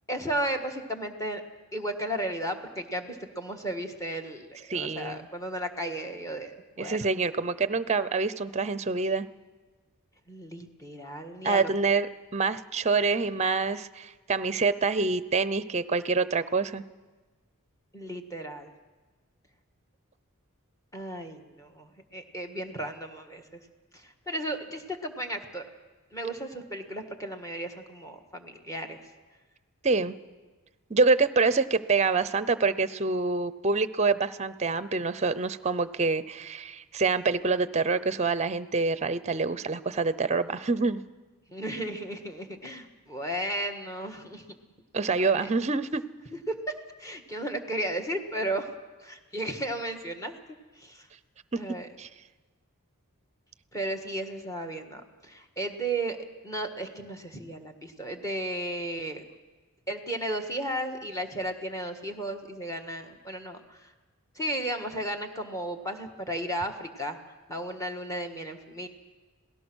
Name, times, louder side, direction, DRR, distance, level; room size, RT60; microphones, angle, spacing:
voice 1, 0.1-1.4 1.7-7.1 10.3-11.7 17.9-18.7 20.9-23.4 23.9-25.6 26.1-29.0 41.5-44.4 45.2-45.5 46.5-46.6 47.0-48.7 49.0-50.3 50.7-51.1 51.6-51.9 53.7-56.2 56.4-59.2 59.9-63.9 64.3-67.2 67.5-68.9, right 1 dB, 15° left, 5 dB, 1.6 m, -34 dB
voice 2, 4.7-5.3 6.8-9.3 11.4-12.1 12.3-16.8 29.8-30.2 30.9-41.0 44.9-46.0 52.0-52.1, right 4 dB, 30° right, 14 dB, 0.6 m, -26 dB
27.0 x 18.0 x 6.3 m, 1.3 s
head